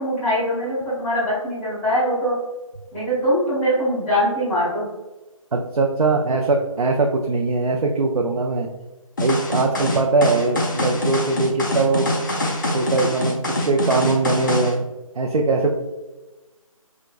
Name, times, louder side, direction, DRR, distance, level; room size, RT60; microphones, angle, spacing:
voice 1, 0.0-2.3 2.9-4.9, equal, 5° left, -14 dB, 1.3 m, -22 dB
voice 2, 5.5-8.7 9.2-12.1 12.7-14.9 15.2-15.7, right 3 dB, 80° right, 1 dB, 0.4 m, -21 dB
sound 1, 9.2-14.7, left 1 dB, 35° left, 0.5 m, -24 dB
3.7 x 2.1 x 2.3 m, 1.1 s
figure-of-eight pair, 160°, 18 cm